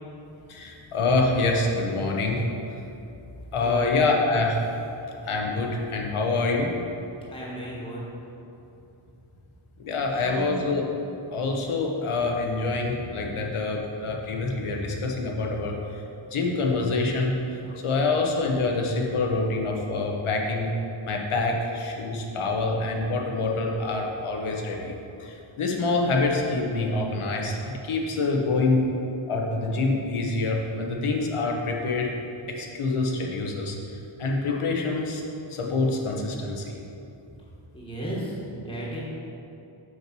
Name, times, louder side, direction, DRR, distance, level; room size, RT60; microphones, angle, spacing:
voice 1, 0.5-2.4 3.5-4.6 5.2-6.7 9.8-10.8 11.3-15.7 16.3-17.3 17.8-20.7 21.1-24.9 25.2-28.8 29.3-32.1 32.5-33.8 34.2-35.2 35.5-36.7, left 3 dB, 85° left, 0 dB, 1.0 m, -26 dB
voice 2, 3.5-4.0 7.3-8.0 10.1-10.5 37.7-39.0, right 1 dB, 10° left, -6 dB, 1.3 m, -35 dB
6.4 x 4.5 x 6.0 m, 2.8 s
wide cardioid pair, 170°, 49 cm